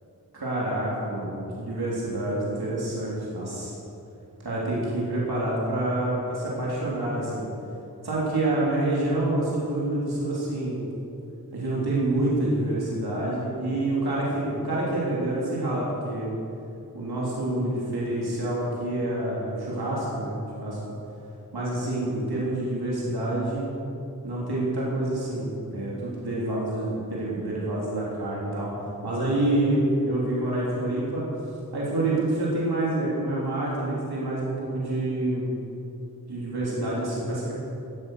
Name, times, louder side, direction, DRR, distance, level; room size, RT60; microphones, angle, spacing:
voice 1, 0.3-3.7 4.4-7.5 8.0-10.8 11.5-16.3 16.9-20.8 21.5-23.7 24.2-28.7 29.0-31.2 31.7-35.5 36.3-37.5, right 1 dB, 80° right, -6 dB, 3.2 m, -27 dB
15.5 x 8.4 x 6.5 m, 2.8 s
cardioid pair, 50°, 38 cm